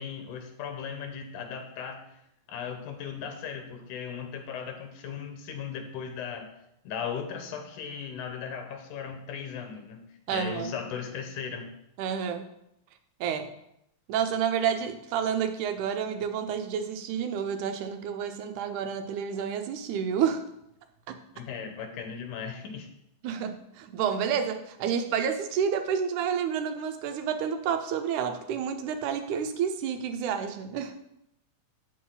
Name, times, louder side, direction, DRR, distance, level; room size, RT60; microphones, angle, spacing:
voice 1, 0.0-2.0 2.5-6.5 6.8-10.0 10.3-11.7 21.4-22.9, left 7 dB, 85° left, 5 dB, 2.5 m, -37 dB
voice 2, 10.3-10.7 12.0-12.5 13.2-13.5 14.1-20.4 21.1-21.2 23.2-30.9, right 7 dB, 80° right, 7 dB, 2.2 m, -29 dB
8.6 x 6.5 x 3.9 m, 0.79 s
omnidirectional pair, 3.5 m